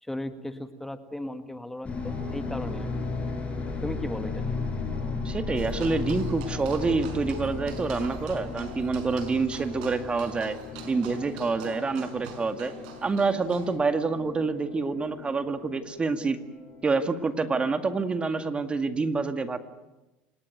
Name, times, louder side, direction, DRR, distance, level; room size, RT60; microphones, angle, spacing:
voice 1, 0.0-2.9 3.8-4.6, left 1 dB, 5° left, 9 dB, 1.8 m, -36 dB
sound 1, 1.8-18.5, left 4 dB, 25° left, 7.8 m, -36 dB
voice 2, 5.2-10.6 10.9-12.7 13.0-16.4 16.8-19.6, right 4 dB, 20° right, 9 dB, 2.0 m, -27 dB
sound 2, 5.6-13.8, right 4 dB, 75° right, 5.3 m, -45 dB
28.5 x 19.0 x 9.3 m, 1.0 s
hypercardioid pair, 95°, 5 cm